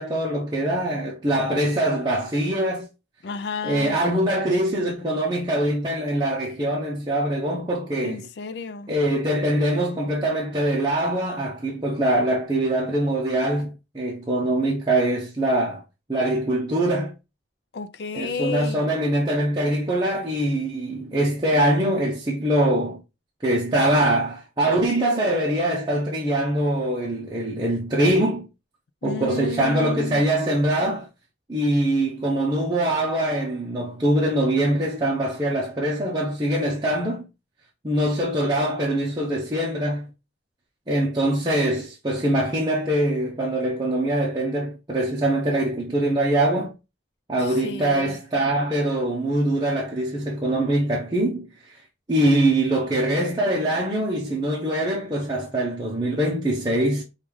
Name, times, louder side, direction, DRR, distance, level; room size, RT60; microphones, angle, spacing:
voice 1, 0.0-2.9 3.6-8.2 8.9-15.8 16.1-17.1 18.1-23.0 23.4-28.5 29.0-31.1 31.5-37.3 37.8-40.1 40.9-46.7 47.3-51.8 52.1-57.0, right 1 dB, 25° right, 0.7 m, -23 dB
voice 2, 3.2-4.0 8.0-8.9 17.7-18.9 29.0-30.3 47.4-48.2, left 3 dB, 60° left, 0.4 m, -32 dB
5.2 x 2.4 x 3.1 m
head